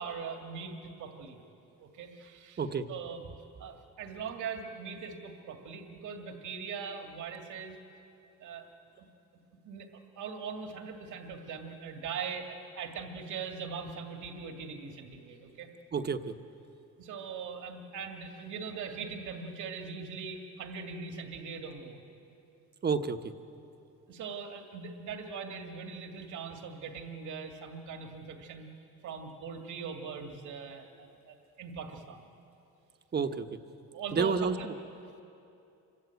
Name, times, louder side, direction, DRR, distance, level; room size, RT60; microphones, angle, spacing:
voice 1, 0.0-1.4 1.8-2.6 2.9-3.2 3.6-7.8 8.4-8.7 9.0-9.1 9.6-15.7 17.0-22.0 24.1-28.7 29.0-32.2 33.9-34.7, right 5 dB, 80° right, 4 dB, 2.2 m, -41 dB
voice 2, 15.9-16.3 22.8-23.3 33.1-33.5 34.1-34.7, right 5 dB, 35° right, 7 dB, 1.1 m, -30 dB
26.0 x 22.5 x 8.3 m, 2.7 s
cardioid pair, 125°, 30 cm